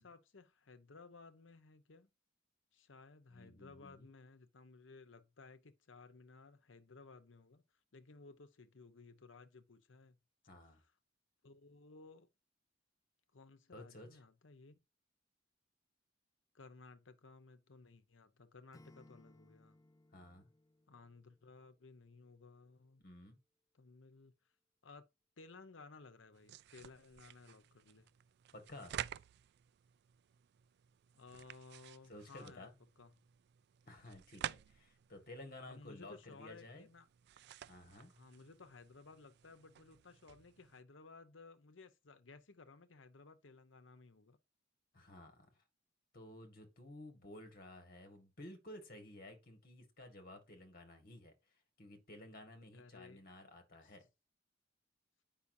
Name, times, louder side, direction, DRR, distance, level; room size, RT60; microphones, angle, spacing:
voice 1, 0.0-2.1 2.7-7.6 7.9-10.2 11.4-12.3 13.3-14.8 16.5-19.8 20.9-23.0 23.7-24.3 24.8-25.1 25.4-28.1 31.2-33.1 35.7-37.1 38.1-44.4 52.7-53.2 53.8-53.9, left 3 dB, 90° left, 1.0 m, -58 dB
voice 2, 3.3-4.1 10.5-10.8 13.7-14.2 20.1-20.5 23.0-23.4 28.5-29.0 32.1-32.7 33.9-36.9 37.7-38.1 44.9-45.6 46.1-54.0, left 1 dB, 50° left, 1.9 m, -54 dB
Acoustic guitar / Strum, 18.7-21.8, left 1 dB, 20° left, 0.6 m, -65 dB
sound 1, 26.3-40.8, right 10 dB, 60° right, 0.3 m, -51 dB
8.5 x 5.7 x 2.7 m
head